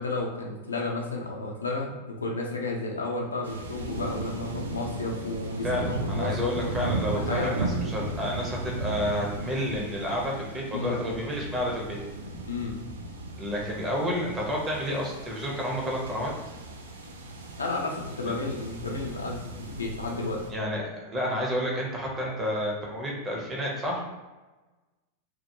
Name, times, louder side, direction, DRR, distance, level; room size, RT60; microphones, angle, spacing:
voice 1, 0.0-6.5 7.1-7.6 10.7-11.0 12.5-12.8 17.6-20.4, left 3 dB, 75° left, -1 dB, 0.4 m, -32 dB
sound 1, 3.4-20.5, right 2 dB, 70° right, 0.3 m, -36 dB
voice 2, 5.6-12.0 13.4-16.3 18.3-18.4 20.5-24.0, equal, 20° right, -2 dB, 0.7 m, -30 dB
2.2 x 2.1 x 2.9 m, 1.2 s
figure-of-eight pair, 90°, 0 cm